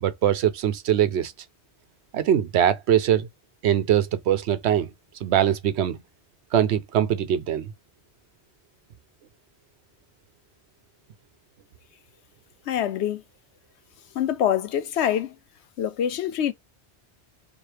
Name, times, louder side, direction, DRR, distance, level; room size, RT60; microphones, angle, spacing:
voice 1, 0.0-1.3 2.1-3.3 3.6-4.9 5.2-6.0 6.5-7.7, right 10 dB, 75° right, 0.9 m, -22 dB
voice 2, 12.7-13.2 14.1-15.4 15.8-16.5, left 10 dB, 80° left, 0.9 m, -25 dB
4.7 x 2.4 x 3.2 m
omnidirectional pair, 1.1 m